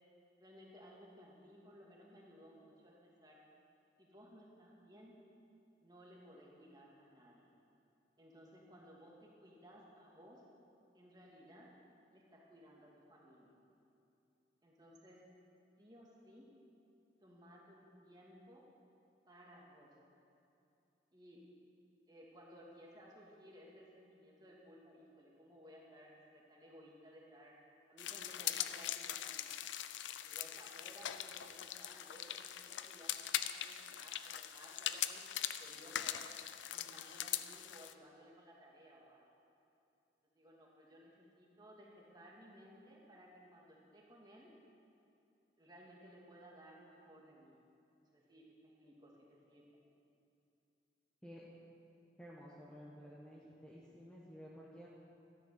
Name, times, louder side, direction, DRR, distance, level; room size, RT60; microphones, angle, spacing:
voice 1, 0.4-3.4 4.0-5.1 5.8-7.5 8.2-10.4 10.9-11.7 12.1-13.5 14.6-15.2 15.8-16.5 17.2-18.7 19.3-19.9 21.1-21.5 22.1-27.6 27.9-29.4 30.2-35.2 35.6-36.3 36.7-39.2 40.4-44.5 45.6-47.6 48.0-49.8, equal, 20° right, -3 dB, 2.2 m, -59 dB
sound 1, 28.0-37.9, left 11 dB, 90° left, 0.5 m, -41 dB
voice 2, 52.2-54.9, equal, 5° left, -6 dB, 1.3 m, -53 dB
13.0 x 10.5 x 6.9 m, 2.7 s
head